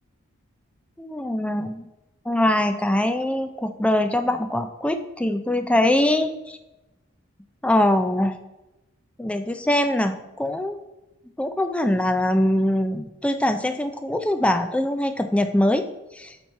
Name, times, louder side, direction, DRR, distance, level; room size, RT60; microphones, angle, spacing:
voice 1, 1.0-1.9 2.3-6.6 7.6-8.4 9.2-10.8 11.4-15.9 16.1-16.4, left 1 dB, 5° left, 8 dB, 0.3 m, -23 dB
8.2 x 3.0 x 5.6 m, 0.98 s
head